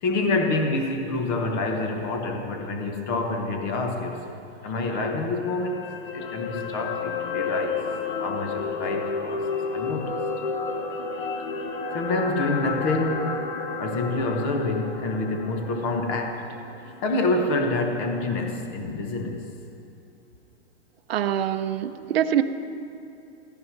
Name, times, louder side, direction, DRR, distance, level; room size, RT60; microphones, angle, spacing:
voice 1, 0.0-7.9 8.2-9.5 9.7-10.1 11.9-13.5 13.8-16.4 17.0-19.5, left 2 dB, 20° left, 4 dB, 0.8 m, -27 dB
sound 1, 5.4-17.7 18.0-18.2, left 4 dB, 45° left, 1.0 m, -32 dB
voice 2, 21.1-22.4, right 10 dB, 55° right, 9 dB, 0.8 m, -24 dB
16.0 x 14.5 x 5.9 m, 2.7 s
supercardioid pair, 175°, 35 cm